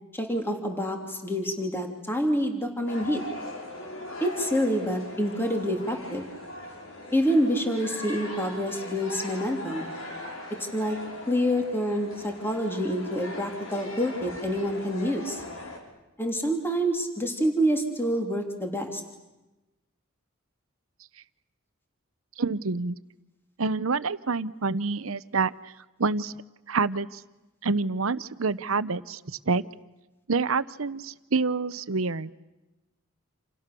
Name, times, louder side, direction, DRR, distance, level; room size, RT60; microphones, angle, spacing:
voice 1, 0.1-3.2 4.2-6.3 7.1-9.9 10.7-11.0 11.3-15.4 16.2-19.0, equal, 10° left, 3 dB, 3.1 m, -27 dB
sound 1, 2.9-15.8, left 1 dB, 70° left, 6.4 m, -40 dB
voice 2, 22.4-23.0 23.6-25.5 26.0-26.3 26.7-27.2 27.6-29.6 30.3-32.3, right 4 dB, 75° right, 15 dB, 0.9 m, -27 dB
28.5 x 28.5 x 6.9 m, 1.0 s
head